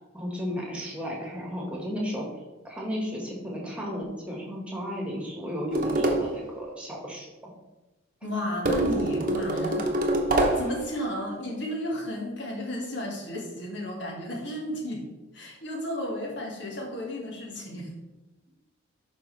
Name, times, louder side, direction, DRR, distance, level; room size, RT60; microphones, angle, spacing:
voice 1, 0.1-2.3 2.6-7.3, equal, 5° right, -2 dB, 1.7 m, -33 dB
sound 1, 5.7-6.4 8.6-10.8, right 1 dB, 40° right, 1.0 m, -25 dB
voice 2, 8.2-9.9 10.3-15.1 15.3-17.9, equal, 60° left, -1 dB, 1.9 m, -33 dB
11.5 x 4.8 x 3.3 m, 1.1 s
head